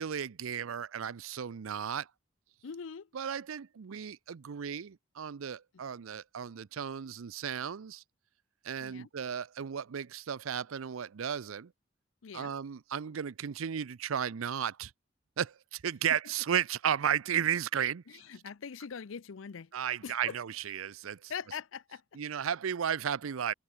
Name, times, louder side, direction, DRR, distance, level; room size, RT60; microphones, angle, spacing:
voice 1, 0.0-2.1 3.1-8.0 8.6-11.7 12.3-14.9 15.4-18.2 19.7-21.3 22.1-23.5, right 8 dB, 90° right, 0.5 m, -34 dB
voice 2, 2.6-3.1 8.8-9.1 12.2-12.5 18.1-19.7 20.0-20.4 21.3-22.0, left 6 dB, 75° left, 0.5 m, -42 dB
head